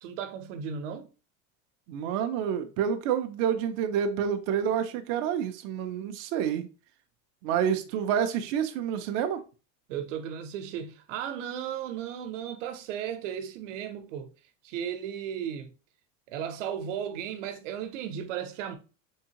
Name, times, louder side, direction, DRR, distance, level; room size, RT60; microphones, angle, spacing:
voice 1, 0.0-1.1 9.9-14.3 14.6-15.7 16.3-18.8, right 8 dB, 75° right, 0.8 m, -35 dB
voice 2, 1.9-6.7 7.4-9.4, right 8 dB, 40° right, 0.4 m, -28 dB
3.6 x 3.5 x 2.8 m
supercardioid pair, 165°, 38 cm